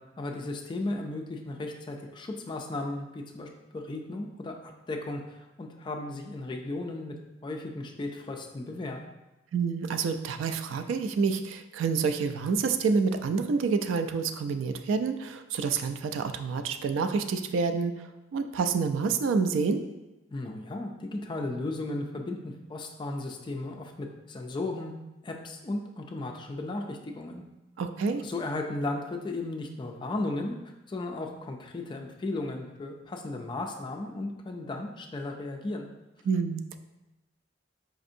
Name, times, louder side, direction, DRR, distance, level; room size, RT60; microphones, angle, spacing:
voice 1, 0.2-7.2 7.4-9.0 20.3-24.9 25.2-27.4 28.2-30.5 30.9-35.9, left 2 dB, 25° left, 2 dB, 0.3 m, -35 dB
voice 2, 9.5-19.8 27.8-28.2 36.3-36.8, right 5 dB, 90° right, 9 dB, 0.3 m, -28 dB
4.9 x 2.6 x 2.6 m, 1.0 s
head